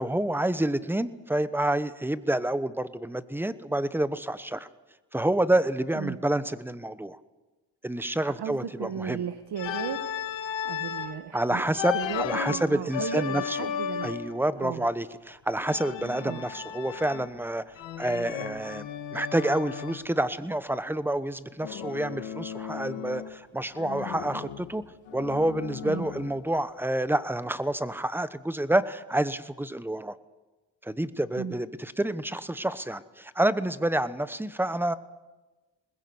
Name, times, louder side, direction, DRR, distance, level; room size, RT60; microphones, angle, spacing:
voice 1, 0.0-4.7 5.1-7.2 7.8-9.2 11.3-13.6 14.0-24.8 25.1-30.2 30.8-35.0, right 1 dB, 5° right, 14 dB, 1.0 m, -28 dB
voice 2, 8.4-10.0 10.6-14.1 14.6-14.9 16.2-16.5 25.8-26.1 31.4-31.5, right 8 dB, 65° right, 9 dB, 1.4 m, -35 dB
Organ, 9.6-11.2 11.7-14.4 15.6-17.4 17.8-20.1 21.6-23.4 23.7-26.5, left 9 dB, 90° left, 1.9 m, -35 dB
22.5 x 20.5 x 7.9 m, 1.2 s
cardioid pair, 100°, 43 cm